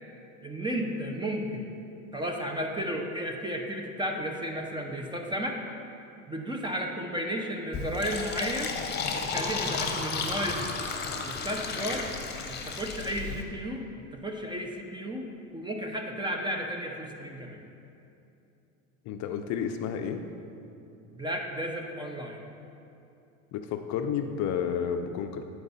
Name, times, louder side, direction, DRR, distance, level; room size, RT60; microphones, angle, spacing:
voice 1, 0.4-1.7 2.1-5.6 6.3-8.7 9.1-10.6 11.2-12.1 12.5-15.2 15.5-17.6 21.1-22.4, equal, 10° right, 2 dB, 0.5 m, -33 dB
Fill (with liquid), 7.7-13.4, left 4 dB, 25° left, 0.9 m, -33 dB
voice 2, 19.1-20.2 23.5-25.4, left 7 dB, 45° left, 6 dB, 0.5 m, -31 dB
8.9 x 4.7 x 4.1 m, 2.7 s
supercardioid pair, 105°, 40 cm